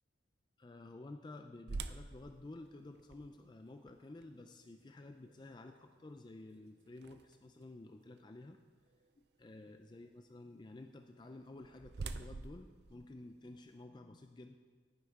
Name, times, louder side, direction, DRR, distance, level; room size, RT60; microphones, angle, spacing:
voice 1, 0.6-8.6 9.4-14.5, left 2 dB, 25° left, 6 dB, 0.3 m, -52 dB
sound 1, 1.7-7.6 8.2-8.3 8.9-9.1 11.2-13.8, right 3 dB, 60° right, 0.4 m, -48 dB
11.0 x 9.8 x 3.6 m, 1.5 s
head